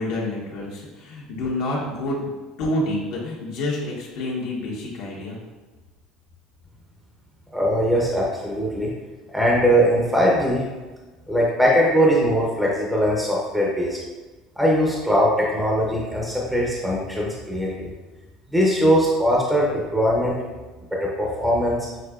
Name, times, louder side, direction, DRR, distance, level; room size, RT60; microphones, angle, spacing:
voice 1, 0.0-2.3 2.6-5.4, left 1 dB, 70° left, -5 dB, 1.3 m, -28 dB
voice 2, 7.5-8.9 9.3-10.7 11.3-14.0 14.6-17.9 18.5-20.4 20.9-21.8, equal, 5° right, -4 dB, 0.7 m, -20 dB
6.4 x 2.7 x 2.4 m, 1.2 s
cardioid pair, 140°, 0 cm